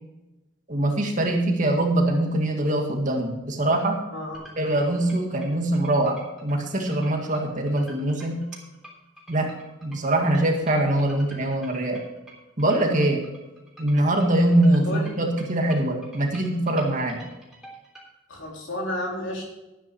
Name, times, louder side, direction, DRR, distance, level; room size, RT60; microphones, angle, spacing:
voice 1, 0.7-4.0 4.6-8.4 9.3-12.0 12.6-13.3 13.8-17.2, right 1 dB, 40° right, 2 dB, 2.0 m, -23 dB
voice 2, 4.1-4.5 14.9-15.1 18.3-19.5, left 1 dB, 75° left, -1 dB, 3.6 m, -31 dB
sound 1, 4.3-18.1, right 1 dB, ahead, 3.3 m, -47 dB
12.5 x 9.4 x 4.7 m, 1.0 s
head